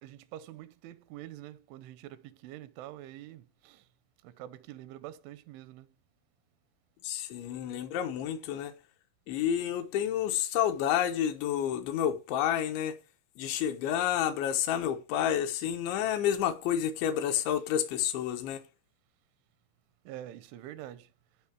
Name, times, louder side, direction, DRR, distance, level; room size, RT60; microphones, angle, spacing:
voice 1, 0.0-3.8 4.2-5.9 20.1-21.1, right 13 dB, 90° right, 3.2 m, -46 dB
voice 2, 7.0-8.7 9.3-13.0 13.4-18.6, left 10 dB, 80° left, 3.4 m, -29 dB
16.5 x 5.7 x 4.6 m
omnidirectional pair, 5.3 m